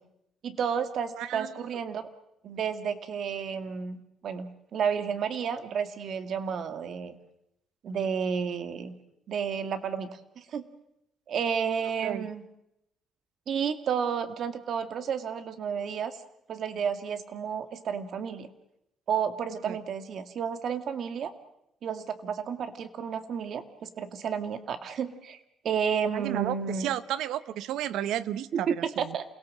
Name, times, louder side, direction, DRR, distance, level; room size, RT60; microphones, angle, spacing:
voice 1, 0.4-2.0 2.4-4.0 4.2-7.1 7.8-8.9 9.3-10.1 10.4-10.7 11.3-12.4 13.5-16.2 16.5-18.5 19.1-21.3 21.8-25.4 25.6-26.9 28.7-29.2, right 7 dB, 60° right, 9 dB, 2.2 m, -31 dB
voice 2, 1.2-1.6 12.0-12.3 19.7-19.8 26.1-29.2, right 11 dB, 90° right, 16 dB, 0.9 m, -32 dB
28.0 x 18.0 x 7.6 m, 0.82 s
cardioid pair, 105°, 0 cm